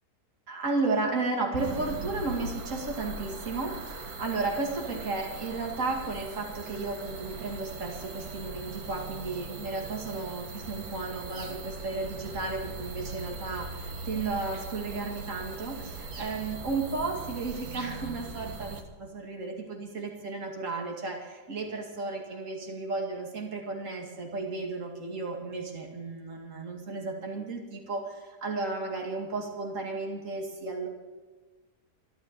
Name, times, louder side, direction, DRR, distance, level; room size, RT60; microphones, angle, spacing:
voice 1, 0.5-30.9, right 3 dB, 50° right, 1 dB, 2.7 m, -33 dB
sound 1, 1.6-18.8, right 3 dB, 65° right, 1.9 m, -40 dB
13.5 x 12.0 x 6.9 m, 1.3 s
omnidirectional pair, 1.7 m